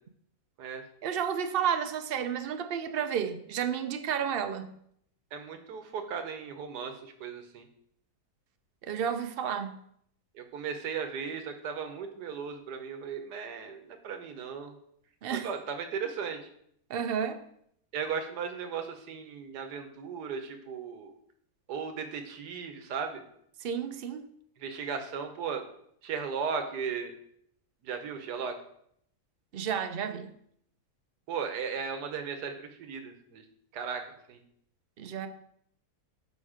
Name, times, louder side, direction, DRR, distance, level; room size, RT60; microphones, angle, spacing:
voice 1, 1.0-4.7 8.8-9.8 15.2-15.5 16.9-17.4 23.6-24.2 29.5-30.3 35.0-35.3, right 8 dB, 65° right, 0.5 m, -31 dB
voice 2, 5.3-7.6 10.3-14.7 15.3-16.4 17.9-21.1 21.7-23.2 24.6-25.6 26.0-27.1 27.8-28.5 31.3-33.4 33.7-34.0 34.3-34.4, right 6 dB, 85° right, 1.5 m, -36 dB
7.0 x 5.2 x 4.9 m
omnidirectional pair, 1.7 m